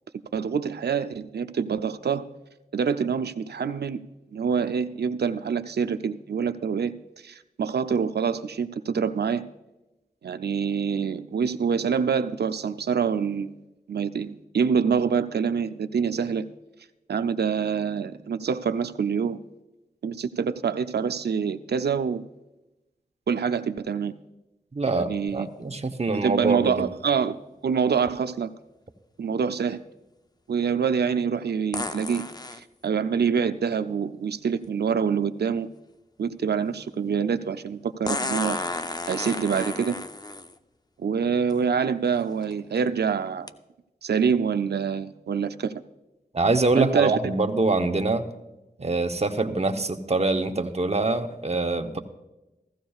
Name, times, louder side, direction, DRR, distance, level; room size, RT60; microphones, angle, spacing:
voice 1, 0.3-2.2 2.7-4.0 4.3-6.9 7.2-9.4 10.2-13.5 13.9-16.4 17.1-19.4 20.0-22.3 23.3-24.1 24.9-25.5 26.1-27.4 27.6-28.5 29.2-29.8 30.5-32.3 32.8-35.7 36.2-38.6 39.1-40.0 41.0-43.5 44.0-45.7 46.8-47.2, right 6 dB, 80° right, 10 dB, 0.5 m, -26 dB
voice 2, 24.7-26.8 46.3-48.3 48.8-52.0, right 3 dB, 40° right, 5 dB, 0.9 m, -24 dB
sound 1, 25.3-25.4 31.7-32.6 34.6-34.7 38.1-40.5 41.5-41.6 42.2-42.5 43.5-43.6, left 2 dB, 25° left, 0.5 m, -32 dB
16.0 x 14.5 x 2.4 m, 1.0 s
wide cardioid pair, 55°, 17 cm